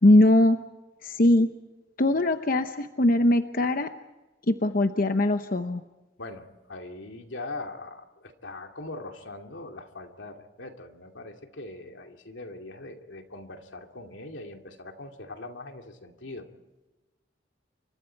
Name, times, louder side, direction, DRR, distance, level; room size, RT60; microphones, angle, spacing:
voice 1, 0.0-0.6 1.0-1.5 2.0-3.9 4.5-5.8, left 1 dB, 50° left, 8 dB, 0.9 m, -21 dB
voice 2, 6.2-16.5, left 2 dB, 85° left, 4 dB, 2.6 m, -41 dB
29.0 x 24.5 x 4.6 m, 1.1 s
head